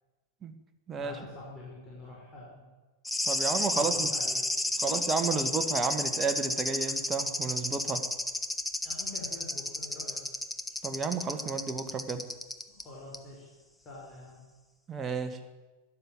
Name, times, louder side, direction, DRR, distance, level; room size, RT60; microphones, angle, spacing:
voice 1, 1.0-2.7 3.7-5.0 8.8-10.2 12.7-13.5 13.8-14.4, left 2 dB, 25° left, -5 dB, 5.3 m, -46 dB
sound 1, 3.0-12.8 13.1-13.2, left 2 dB, 5° left, 1.1 m, -32 dB
voice 2, 3.2-4.1 4.8-8.0 10.8-12.2 14.9-15.4, right 5 dB, 20° right, 6 dB, 1.8 m, -32 dB
13.0 x 11.5 x 9.4 m, 1.2 s
figure-of-eight pair, 90°, 0 cm